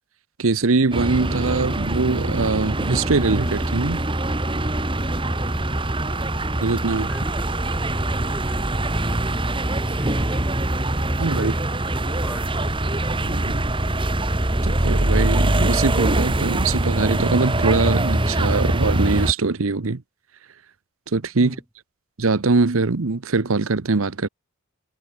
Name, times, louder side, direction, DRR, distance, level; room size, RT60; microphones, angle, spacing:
voice 1, 0.4-4.0 6.6-7.1 11.2-11.5 13.2-13.7 14.6-20.0 21.1-21.5 22.2-24.3, right 3 dB, 75° right, 0.9 m, -22 dB
sound 1, 0.9-19.3, right 1 dB, 25° right, 1.8 m, -23 dB
voice 2, 5.2-6.1 7.1-9.3 9.6-10.8 11.2-12.5 21.4-21.6, equal, 5° right, 7.8 m, -38 dB
head